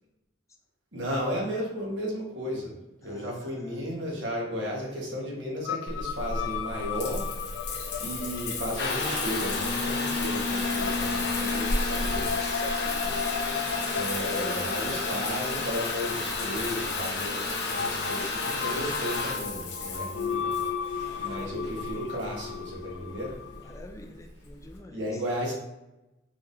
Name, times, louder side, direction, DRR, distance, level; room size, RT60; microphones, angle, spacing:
voice 1, 0.9-2.7 3.0-7.2 8.0-12.2 13.9-23.4 24.9-25.5, equal, 85° right, -2 dB, 1.4 m, -34 dB
voice 2, 3.0-3.9 12.4-13.9 14.2-15.1 21.0-21.9 23.6-25.2, left 1 dB, 15° left, 4 dB, 0.4 m, -44 dB
sound 1, 5.7-23.8, left 6 dB, 90° left, 0.4 m, -36 dB
Water tap faucet / Bathtub (filling or washing) / Trickle dribble, 5.9-24.8, left 3 dB, 65° left, 0.9 m, -32 dB
4.6 x 3.6 x 2.7 m, 0.93 s
head